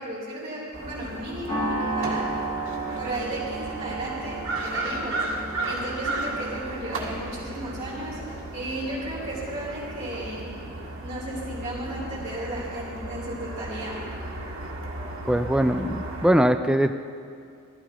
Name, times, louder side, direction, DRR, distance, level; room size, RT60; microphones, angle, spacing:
voice 1, 0.0-2.3 2.9-5.2 5.6-10.5 11.0-14.0, right 1 dB, 30° right, -9 dB, 3.3 m, -34 dB
sound 1, 0.7-16.3, right 1 dB, 65° right, 1.8 m, -35 dB
sound 2, 1.5-10.0, right 2 dB, 20° left, 2.9 m, -34 dB
voice 2, 15.3-16.9, right 1 dB, 5° right, 8 dB, 0.3 m, -21 dB
20.0 x 13.5 x 3.0 m, 2.3 s
head